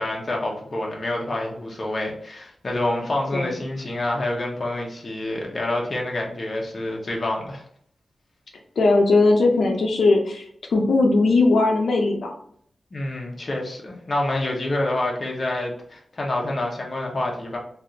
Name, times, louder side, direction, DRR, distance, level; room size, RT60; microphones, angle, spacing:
voice 1, 0.0-7.6 12.9-17.6, left 1 dB, 35° left, -1 dB, 0.8 m, -27 dB
voice 2, 8.8-12.3, left 3 dB, 85° left, 1 dB, 0.5 m, -19 dB
3.3 x 2.4 x 2.7 m, 0.64 s
wide cardioid pair, 155°, 0 cm